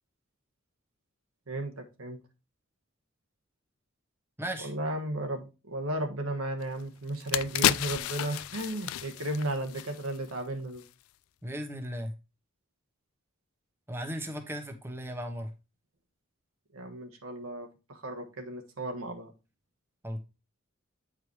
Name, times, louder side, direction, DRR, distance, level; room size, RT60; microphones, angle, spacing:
voice 1, 1.5-2.2 4.6-10.8 16.7-19.3, right 1 dB, 90° right, 1.3 m, -34 dB
voice 2, 4.4-4.7 11.4-12.1 13.9-15.5 20.0-20.2, equal, 10° right, 0.9 m, -36 dB
sound 1, 6.6-6.7 7.1-10.4 10.7-10.9, left 12 dB, 85° left, 0.3 m, -31 dB
8.5 x 4.8 x 3.1 m
head